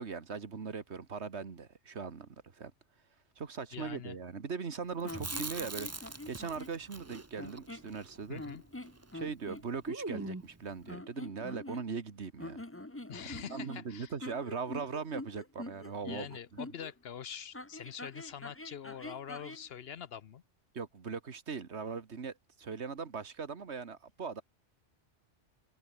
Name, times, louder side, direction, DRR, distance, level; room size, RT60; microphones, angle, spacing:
voice 1, 0.0-2.7 3.4-8.4 9.1-12.7 13.3-16.4 20.7-24.4, right 5 dB, 65° right, 1.8 m, -40 dB
voice 2, 3.7-4.2 8.3-8.6 13.1-14.1 16.0-20.4, left 8 dB, 60° left, 0.9 m, -44 dB
sound 1, 5.0-6.8 7.4-7.9 8.4-9.7 10.8-12.1 12.4-16.9 17.5-19.7, left 1 dB, 10° left, 1.2 m, -45 dB
Chewing mastication, 5.0-9.2 9.4-9.5 9.9-10.6, right 3 dB, 15° right, 0.6 m, -42 dB
open air
omnidirectional pair, 1.2 m